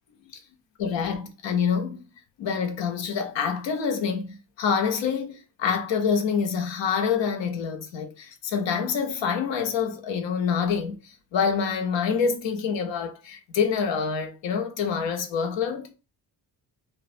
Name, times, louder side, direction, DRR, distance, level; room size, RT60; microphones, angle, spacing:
voice 1, 0.8-2.0 2.4-15.9, left 6 dB, 75° left, 0.7 m, -26 dB
2.3 x 2.1 x 2.5 m
supercardioid pair, 60°, 45 cm